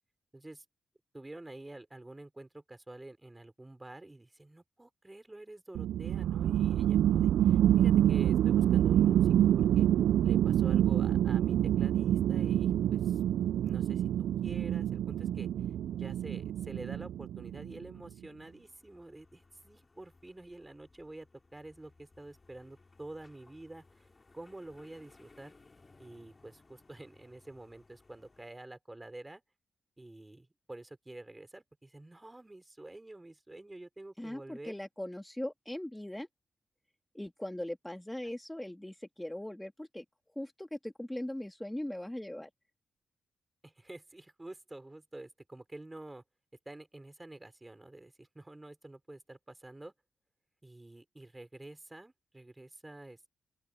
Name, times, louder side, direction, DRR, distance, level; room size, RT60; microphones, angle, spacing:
voice 1, 0.3-0.6 1.1-9.9 10.2-13.2 13.6-14.1 14.4-15.5 15.9-24.1 24.3-25.5 26.0-29.4 30.0-34.7 43.6-46.2 46.6-49.9 50.6-53.3, right 2 dB, 20° right, 4.8 m, -48 dB
sound 1, 5.7-17.8, right 11 dB, 85° right, 0.4 m, -27 dB
sound 2, 18.5-28.5, left 3 dB, 35° left, 6.5 m, -62 dB
voice 2, 34.2-36.3 37.1-40.0 40.4-42.5, left 1 dB, 10° left, 2.0 m, -40 dB
open air
supercardioid pair, 50°, 0 cm